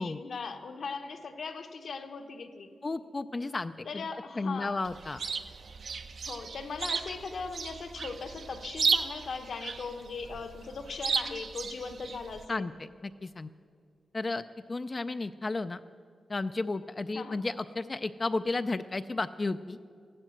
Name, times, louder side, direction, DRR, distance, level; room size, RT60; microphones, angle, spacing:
voice 1, 0.0-2.8 3.8-4.8 6.3-12.7 17.1-17.4, left 4 dB, 65° left, 6 dB, 1.1 m, -39 dB
voice 2, 2.8-3.7 4.4-5.2 12.5-12.7 13.0-13.5 14.1-14.4 14.7-15.8 16.3-19.8, left 3 dB, 30° left, 10 dB, 0.3 m, -33 dB
Chirp tweet, 4.8-12.5, right 5 dB, 60° right, 0.6 m, -34 dB
15.5 x 12.0 x 7.8 m, 2.2 s
wide cardioid pair, 135°, 0 cm